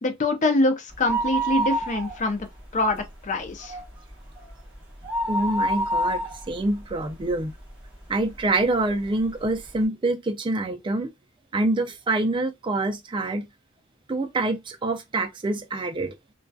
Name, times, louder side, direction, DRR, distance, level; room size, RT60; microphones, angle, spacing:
voice 1, 0.0-2.5 2.7-3.8, left 2 dB, 35° left, 0.5 m, -24 dB
sound 1, 0.9-2.6 2.9-3.0 3.5-7.8 8.4-8.5 9.3-9.4 9.6-9.7, right 1 dB, 5° right, 0.9 m, -27 dB
voice 2, 5.3-7.5 8.1-11.1 11.5-13.5 14.1-16.1, right 2 dB, 25° right, 0.3 m, -26 dB
2.6 x 2.2 x 2.2 m
head